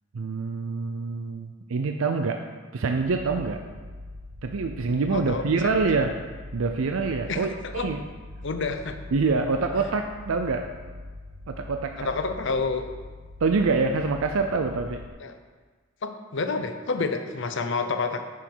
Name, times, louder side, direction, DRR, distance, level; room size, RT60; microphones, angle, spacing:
voice 1, 0.1-2.4 2.7-3.6 4.4-6.1 6.5-8.0 9.1-10.7 11.5-12.1 13.4-15.0, right 4 dB, 90° right, 5 dB, 0.5 m, -26 dB
sound 1, 3.0-15.1, left 2 dB, 55° right, 1.2 m, -42 dB
voice 2, 5.1-5.8 7.3-7.9 8.4-9.0 9.8-9.9 12.0-12.9 15.2-15.4 16.0-18.2, left 4 dB, 60° left, 7 dB, 0.7 m, -29 dB
9.1 x 6.2 x 4.6 m, 1.4 s
head